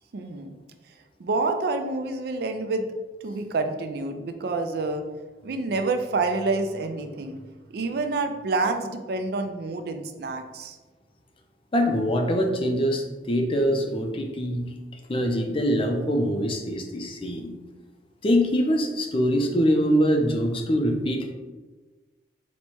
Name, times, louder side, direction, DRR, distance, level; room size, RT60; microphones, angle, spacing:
voice 1, 0.1-0.6 1.2-2.9 3.2-5.1 5.4-7.4 7.7-10.8, right 3 dB, 60° right, 7 dB, 0.4 m, -28 dB
voice 2, 11.7-14.7 15.1-17.5 18.2-21.3, equal, 30° left, 3 dB, 0.5 m, -24 dB
4.2 x 2.2 x 4.5 m, 1.2 s
head